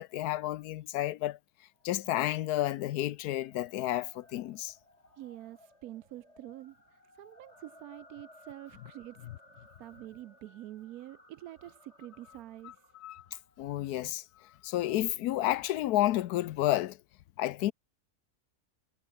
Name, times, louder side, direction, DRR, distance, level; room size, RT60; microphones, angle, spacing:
voice 1, 0.0-1.4 1.8-4.7 12.6-12.7 13.0-14.2 14.6-17.0 17.4-17.7, left 14 dB, 85° left, 1.2 m, -31 dB
sound 1, 1.7-14.2, left 1 dB, 45° left, 8.0 m, -60 dB
voice 2, 5.2-9.2 9.5-12.8, right 14 dB, 75° right, 1.0 m, -47 dB
omnidirectional pair, 1.6 m